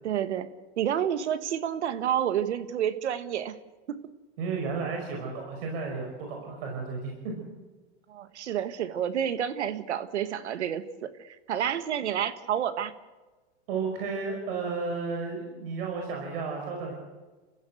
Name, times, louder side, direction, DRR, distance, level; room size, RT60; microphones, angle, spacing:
voice 1, 0.0-0.5 0.8-3.6 3.9-4.0 8.1-12.9, right 9 dB, 90° right, 12 dB, 1.7 m, -29 dB
voice 2, 4.4-7.3 13.7-16.9, right 4 dB, 60° right, 1 dB, 5.6 m, -33 dB
28.5 x 15.5 x 8.0 m, 1.2 s
supercardioid pair, 150°, 33 cm